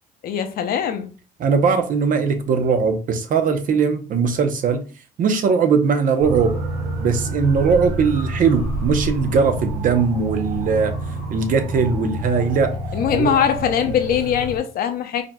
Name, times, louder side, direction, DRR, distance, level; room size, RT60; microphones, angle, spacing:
voice 1, 0.2-1.1 12.9-15.2, left 8 dB, 60° left, 0.7 m, -21 dB
voice 2, 1.4-4.8 5.2-6.5 7.0-11.0 11.3-12.8 13.1-13.3, right 5 dB, 55° right, 0.7 m, -19 dB
sound 1, 6.2-14.6, right 2 dB, 85° right, 2.0 m, -28 dB
5.0 x 2.8 x 2.2 m
cardioid pair, 110°, 17 cm